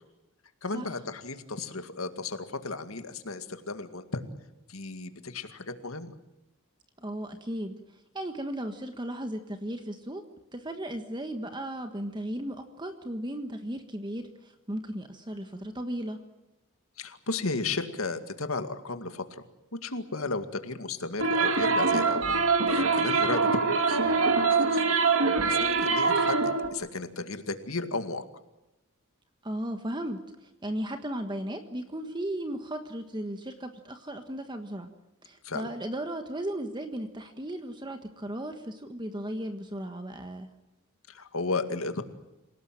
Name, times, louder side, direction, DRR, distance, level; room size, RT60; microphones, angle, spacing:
voice 1, 0.6-4.2 4.7-6.1 17.0-19.4 19.8-22.3 22.7-25.0 25.4-28.2 35.4-35.7 41.1-42.0, left 3 dB, 80° left, 8 dB, 2.2 m, -34 dB
voice 2, 7.0-7.8 8.1-10.2 10.5-16.2 29.4-34.9 35.2-40.5, right 1 dB, 20° right, 6 dB, 1.4 m, -36 dB
sound 1, 21.2-26.7, right 4 dB, 70° right, 2.4 m, -24 dB
27.5 x 18.0 x 9.1 m, 0.96 s
head